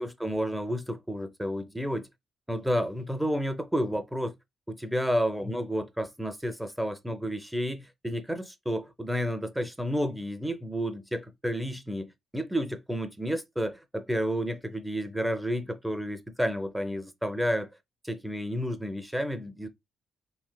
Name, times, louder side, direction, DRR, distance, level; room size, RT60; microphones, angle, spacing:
voice 1, 0.0-2.1 2.5-4.3 4.7-17.7 18.0-19.7, equal, 5° right, 0.5 m, -31 dB
3.1 x 2.9 x 2.2 m
cardioid pair, 90°, 0 cm